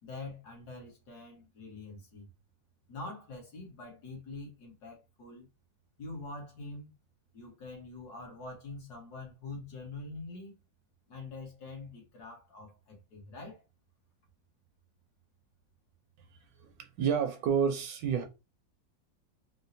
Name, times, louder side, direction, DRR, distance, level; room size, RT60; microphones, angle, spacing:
voice 1, 0.0-2.3 2.9-5.5 6.0-6.9 7.3-10.6 11.1-13.6, left 3 dB, 60° left, 1.6 m, -45 dB
voice 2, 16.6-18.2, right 7 dB, 75° right, 1.1 m, -29 dB
4.4 x 2.0 x 2.6 m
omnidirectional pair, 2.1 m